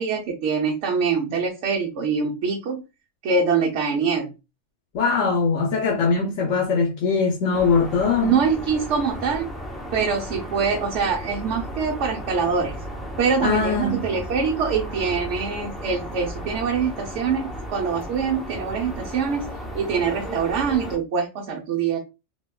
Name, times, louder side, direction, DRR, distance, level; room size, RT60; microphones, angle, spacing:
voice 1, 0.0-2.8 3.2-4.3 8.2-9.5 9.9-12.7 13.2-22.0, right 5 dB, 75° right, 1.0 m, -24 dB
voice 2, 4.9-8.4 13.4-14.1, left 5 dB, 75° left, 1.0 m, -21 dB
sound 1, 7.5-21.0, equal, ahead, 0.3 m, -34 dB
4.2 x 2.2 x 2.2 m
omnidirectional pair, 1.3 m